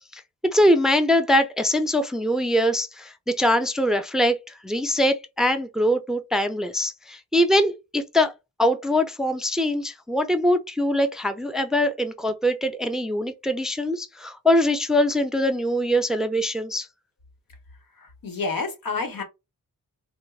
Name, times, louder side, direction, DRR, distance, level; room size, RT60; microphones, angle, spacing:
voice 1, 0.5-8.3 8.6-16.9, left 1 dB, ahead, 0.5 m, -22 dB
voice 2, 18.0-19.2, left 4 dB, 80° left, 1.1 m, -29 dB
4.3 x 2.1 x 2.3 m
cardioid pair, 80°, 34 cm